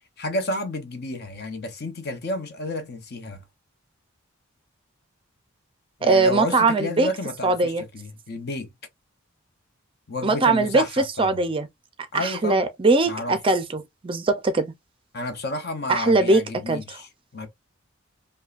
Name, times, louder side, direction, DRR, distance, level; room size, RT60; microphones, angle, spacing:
voice 1, 0.2-3.4 6.0-8.7 10.1-11.5 12.1-12.7 13.1-13.4 15.1-17.5, left 1 dB, 50° left, 0.8 m, -31 dB
voice 2, 6.0-7.1 7.4-7.8 10.2-11.7 12.1-14.7 15.9-17.0, right 3 dB, 25° right, 0.5 m, -21 dB
5.3 x 2.2 x 2.5 m
head